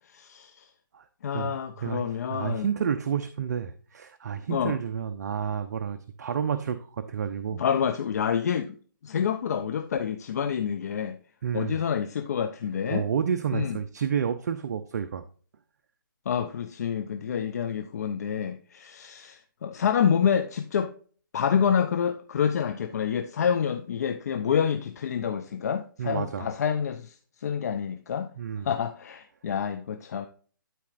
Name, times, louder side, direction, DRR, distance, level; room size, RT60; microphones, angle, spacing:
voice 1, 0.1-0.7 1.2-2.7 4.5-4.8 7.5-8.7 9.0-11.2 11.5-13.1 13.5-13.8 16.3-20.9 21.3-27.1 27.4-28.3 28.6-30.3, left 7 dB, 50° left, 8 dB, 0.6 m, -28 dB
voice 2, 1.8-7.6 11.4-11.8 12.9-15.2 26.0-26.5 28.4-28.7, right 7 dB, 50° right, 9 dB, 0.6 m, -30 dB
12.5 x 4.3 x 2.5 m, 0.42 s
hypercardioid pair, 150°, 11 cm